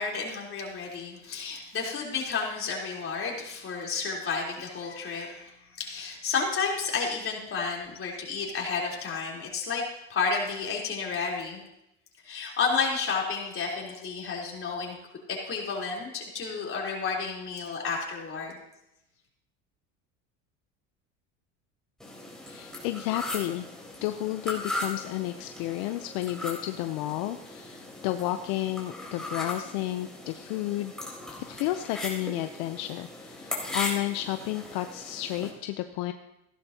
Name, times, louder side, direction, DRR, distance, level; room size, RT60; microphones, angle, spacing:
voice 1, 0.0-5.5 5.8-9.8 10.1-11.6 12.2-15.0 15.3-18.6, left 5 dB, 35° left, -2 dB, 3.9 m, -31 dB
sound 1, 22.0-35.5, left 1 dB, ahead, 4.0 m, -38 dB
voice 2, 22.5-23.7 24.0-30.9 31.5-36.1, left 15 dB, 70° left, 8 dB, 0.8 m, -32 dB
16.0 x 11.5 x 2.9 m, 0.87 s
supercardioid pair, 115°, 38 cm